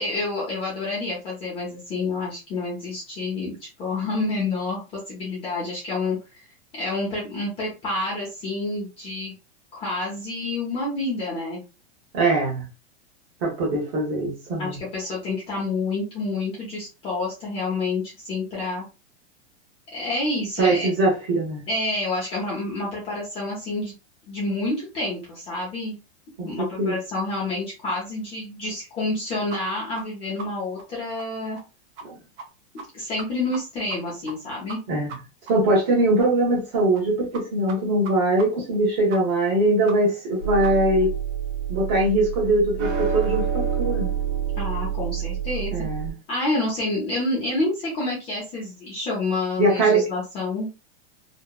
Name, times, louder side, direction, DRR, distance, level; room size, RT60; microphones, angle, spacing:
voice 1, 0.0-6.2 6.7-9.3 9.7-11.6 14.6-18.8 19.9-20.9 21.7-23.9 24.3-25.9 26.4-31.6 32.9-34.8 44.6-45.7 46.3-50.7, left 2 dB, 15° left, 0.6 m, -28 dB
voice 2, 12.1-12.6 13.4-14.8 20.6-21.6 26.4-27.0 32.0-32.1 34.9-35.1 35.5-41.1 41.7-44.1 45.7-46.1 49.6-50.0, right 2 dB, 30° right, 1.0 m, -22 dB
sound 1, 29.5-29.6 29.9-30.0 30.4-30.5 30.8-30.9 31.2-31.3 31.5-31.6 32.0-32.1 32.4-32.5 32.8-32.9 33.2-33.6 33.9-34.0 34.3-34.4 34.7-34.8 35.1-35.2 35.5-35.6 35.8-35.9 36.2-36.3 36.6-36.7 36.9-37.0 37.3-37.4 37.7-37.8 38.0-38.1 38.4-38.5 38.7-38.8 39.1-39.2 39.5-39.6 39.9-40.0 40.2-40.3 40.6-40.7 41.0-41.1, right 4 dB, 55° right, 0.7 m, -38 dB
sound 2, 40.4-46.1, right 8 dB, 75° right, 1.1 m, -27 dB
2.9 x 2.2 x 2.2 m
supercardioid pair, 170°, 34 cm